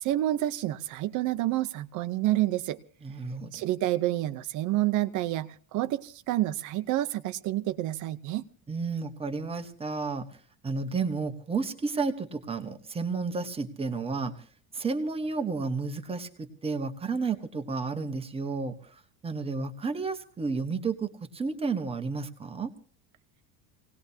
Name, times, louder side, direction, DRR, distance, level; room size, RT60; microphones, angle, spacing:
voice 1, 0.0-2.8 3.5-8.4, right 15 dB, 45° right, 10 dB, 0.8 m, -28 dB
voice 2, 3.0-3.6 8.7-10.3 10.6-14.4 14.7-22.7, right 4 dB, 15° right, 7 dB, 1.2 m, -32 dB
26.5 x 18.5 x 2.8 m, 0.41 s
cardioid pair, 170°, 42 cm